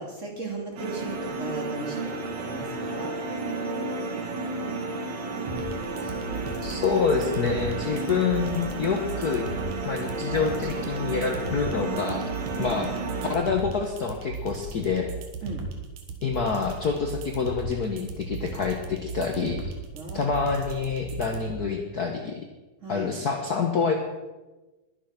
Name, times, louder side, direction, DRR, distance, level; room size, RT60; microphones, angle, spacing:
voice 1, 0.0-3.1 12.6-12.8 15.4-15.6 19.9-20.3 22.8-23.1, right 2 dB, 25° right, 0 dB, 2.7 m, -36 dB
sound 1, 0.8-13.3, right 3 dB, 60° right, 3.1 m, -32 dB
sound 2, 5.5-21.5, right 3 dB, 85° right, 3.2 m, -37 dB
voice 2, 6.6-9.5 9.8-12.3 12.6-12.9 13.3-15.1 16.2-19.7 20.1-22.4 22.9-23.9, left 5 dB, 65° left, 3 dB, 0.9 m, -27 dB
21.5 x 7.8 x 5.9 m, 1.1 s
omnidirectional pair, 3.5 m